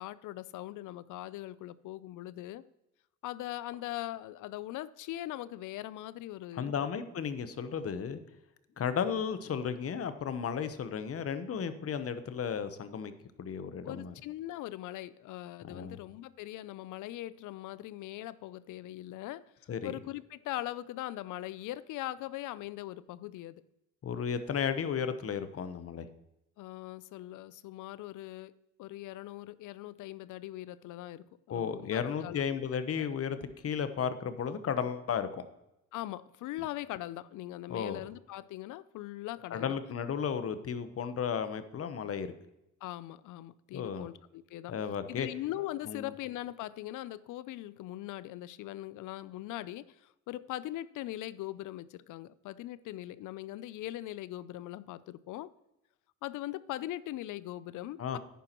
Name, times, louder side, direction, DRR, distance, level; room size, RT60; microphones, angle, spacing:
voice 1, 0.0-2.6 3.2-6.7 13.8-19.4 19.8-23.6 26.6-28.5 28.8-32.6 33.0-33.1 35.9-39.8 42.8-44.7 45.1-55.5 56.2-58.2, left 15 dB, 85° left, 0.5 m, -41 dB
voice 2, 6.5-8.2 8.8-13.1 13.4-14.1 15.6-16.0 19.7-19.9 24.0-26.1 31.5-35.5 37.7-38.0 39.5-42.3 43.7-44.1 44.7-45.3 45.9-46.1 58.0-58.2, left 7 dB, 50° left, 1.0 m, -34 dB
10.5 x 9.2 x 3.0 m
cardioid pair, 90°, 30 cm